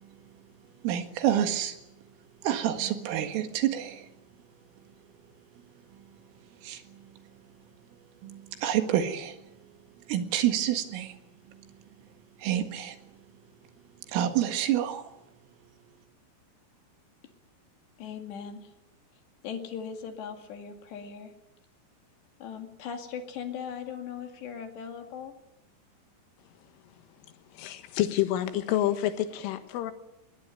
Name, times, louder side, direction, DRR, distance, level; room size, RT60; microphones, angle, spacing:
voice 1, 0.8-1.8 2.4-4.1 6.6-6.8 8.2-9.4 10.1-11.2 12.4-13.0 14.1-15.1, right 11 dB, 85° right, 7 dB, 4.4 m, -28 dB
voice 2, 18.0-18.7 19.4-21.3 22.4-25.3, left 7 dB, 65° left, 5 dB, 4.2 m, -39 dB
voice 3, 27.5-29.9, left 13 dB, 85° left, 9 dB, 3.9 m, -28 dB
21.5 x 19.5 x 9.1 m, 0.88 s
omnidirectional pair, 5.7 m